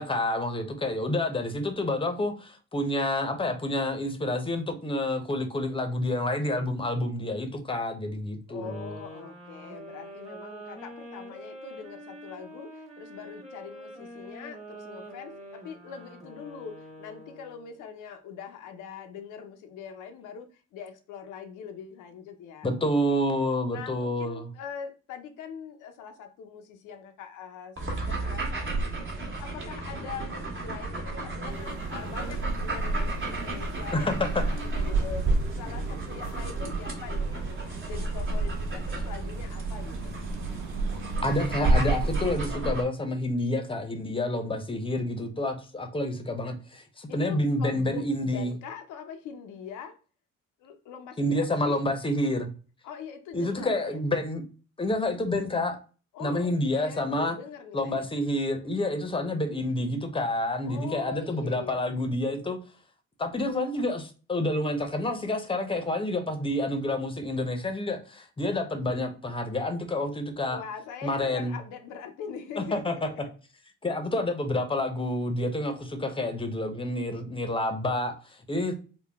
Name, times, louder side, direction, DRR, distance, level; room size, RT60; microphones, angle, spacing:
voice 1, 0.0-8.9 22.6-24.5 33.9-34.4 41.2-48.5 51.2-52.5 53.3-54.4 54.8-55.8 56.2-57.4 57.7-62.6 63.2-70.6 71.0-71.6 72.6-73.1 73.8-78.7, left 1 dB, 15° left, 0.7 m, -28 dB
voice 2, 8.5-23.2 23.7-40.1 47.1-50.0 50.6-51.8 52.8-54.0 56.1-58.1 60.7-61.8 70.5-73.2, left 7 dB, 85° left, 0.6 m, -42 dB
sound 1, 8.6-17.8, right 1 dB, 20° right, 1.4 m, -45 dB
sound 2, 27.8-42.8, right 2 dB, 40° right, 1.3 m, -30 dB
sound 3, 31.5-42.2, right 3 dB, 75° right, 0.6 m, -39 dB
3.8 x 2.2 x 3.3 m
cardioid pair, 90°, 30 cm